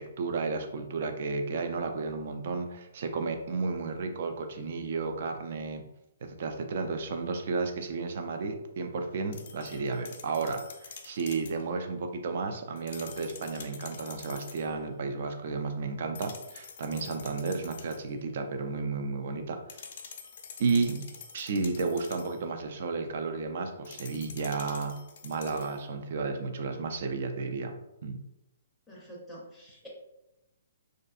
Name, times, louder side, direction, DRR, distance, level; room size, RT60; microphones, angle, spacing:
voice 1, 0.0-5.9 6.2-19.6 20.6-21.1 21.3-27.7 28.0-28.2, right 4 dB, 50° right, 6 dB, 0.3 m, -32 dB
sound 1, 9.3-11.6 12.8-14.7 16.1-18.1 19.7-22.4 23.8-25.8, left 6 dB, 50° left, 0.4 m, -47 dB
voice 2, 28.9-29.9, equal, ahead, -6 dB, 0.5 m, -47 dB
2.6 x 2.4 x 2.3 m, 0.91 s
hypercardioid pair, 160°, 0 cm